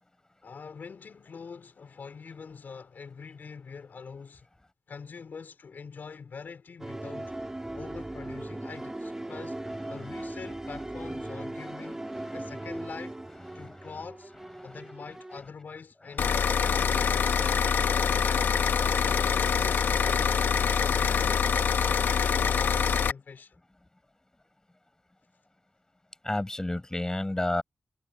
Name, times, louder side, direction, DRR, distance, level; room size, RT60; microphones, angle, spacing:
voice 1, 0.4-4.5 4.9-7.3 7.7-9.6 9.9-12.0 12.3-13.2 13.5-14.3 14.6-17.5 18.2-21.4 21.8-23.6, left 5 dB, 65° left, 5.1 m, -44 dB
sound 1, 6.8-15.4, right 1 dB, 15° right, 4.1 m, -38 dB
voice 2, 12.1-12.5 13.5-13.9 14.6-14.8 26.2-27.6, left 1 dB, 20° left, 6.3 m, -33 dB
sound 2, 16.2-23.1, left 6 dB, 90° left, 1.1 m, -25 dB
wide cardioid pair, 80°, 3 cm